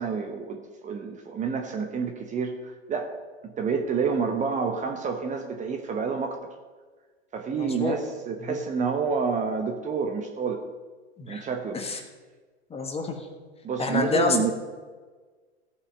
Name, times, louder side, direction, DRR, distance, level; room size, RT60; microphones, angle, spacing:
voice 1, 0.0-3.1 3.4-6.5 7.3-10.6 11.2-11.8 13.6-14.5, right 5 dB, 20° right, 4 dB, 1.0 m, -29 dB
voice 2, 7.6-8.0 8.4-8.6 11.2-11.5 11.7-12.0 12.7-13.3 13.8-14.5, left 4 dB, 15° left, 5 dB, 1.4 m, -28 dB
15.0 x 5.6 x 5.3 m, 1.4 s
hypercardioid pair, 100°, 34 cm